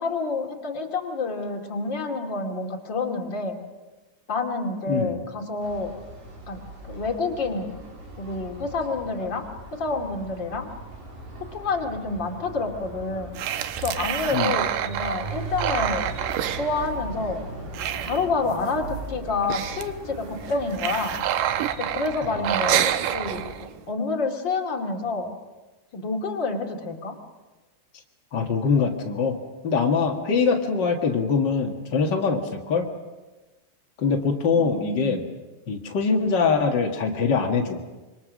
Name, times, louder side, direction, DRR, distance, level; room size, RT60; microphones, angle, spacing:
voice 1, 0.0-3.6 4.3-6.0 6.5-7.7 8.2-10.7 11.5-13.3 13.8-16.1 16.4-17.4 18.0-21.1 21.8-23.4 23.9-25.3 25.9-27.1 34.5-35.2, left 3 dB, 35° left, 1 dB, 2.3 m, -28 dB
sound 1, 5.6-23.5, right 2 dB, 55° right, 5.6 m, -39 dB
sound 2, 13.4-17.4 17.6-18.7 19.0-19.1 19.3-19.9 20.4-23.8, right 11 dB, 80° right, 1.9 m, -27 dB
voice 2, 28.3-29.4 29.6-32.9 34.0-35.2 35.7-37.8, left 5 dB, 75° left, 1 dB, 1.0 m, -23 dB
26.0 x 24.5 x 6.4 m, 1.2 s
omnidirectional pair, 4.9 m